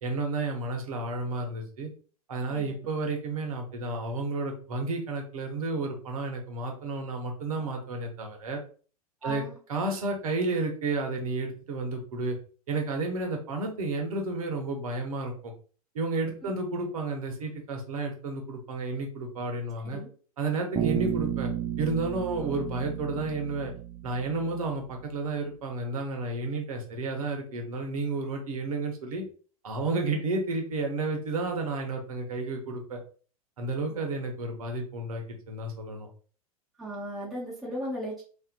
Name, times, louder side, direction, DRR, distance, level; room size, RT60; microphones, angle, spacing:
voice 1, 0.0-1.9 2.3-8.6 9.2-9.4 9.7-12.4 12.7-15.5 15.9-20.0 20.4-21.5 21.8-23.7 24.0-29.2 29.6-33.0 33.6-36.1, right 3 dB, 65° right, 3 dB, 0.8 m, -31 dB
voice 2, 9.2-9.6 16.4-16.5 19.8-20.1 33.9-34.0 36.8-38.2, equal, ahead, -8 dB, 1.0 m, -36 dB
Bass guitar, 20.8-24.6, right 9 dB, 20° right, 0.4 m, -32 dB
2.5 x 2.4 x 2.2 m, 0.40 s
figure-of-eight pair, 90°, 20 cm